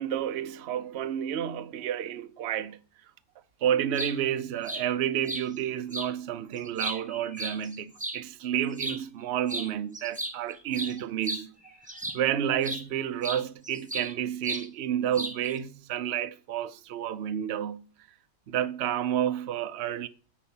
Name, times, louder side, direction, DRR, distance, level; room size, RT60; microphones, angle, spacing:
voice 1, 0.0-2.8 3.6-11.5 12.1-17.8 18.5-20.1, right 10 dB, 65° right, 0.6 m, -30 dB
sound 1, 3.7-4.1 4.7-4.8 5.3-5.5 5.9-6.1 6.6-8.2 8.7-9.0 9.5-9.7 9.9-12.3 12.6-12.8 13.2-14.1 14.4-14.7 15.1-15.6, right 1 dB, 5° right, 0.8 m, -35 dB
10.0 x 4.2 x 7.2 m
omnidirectional pair, 1.8 m